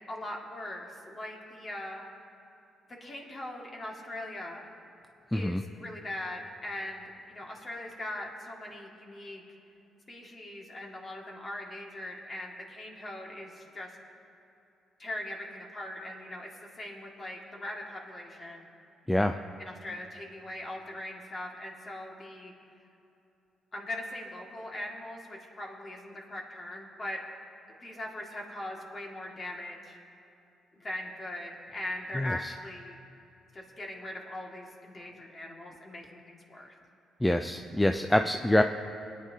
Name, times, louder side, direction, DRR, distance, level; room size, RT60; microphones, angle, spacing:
voice 1, 0.1-2.0 3.0-4.7 5.3-9.4 10.1-14.0 15.0-18.7 19.6-22.5 23.7-27.2 27.7-30.0 30.7-33.0 33.5-36.7, left 1 dB, 35° left, -1 dB, 2.0 m, -40 dB
voice 2, 5.3-5.6 19.1-19.4 32.2-32.4 37.2-38.6, left 1 dB, 10° left, 6 dB, 0.4 m, -25 dB
22.0 x 9.2 x 2.8 m, 2.9 s
cardioid pair, 90°, 0 cm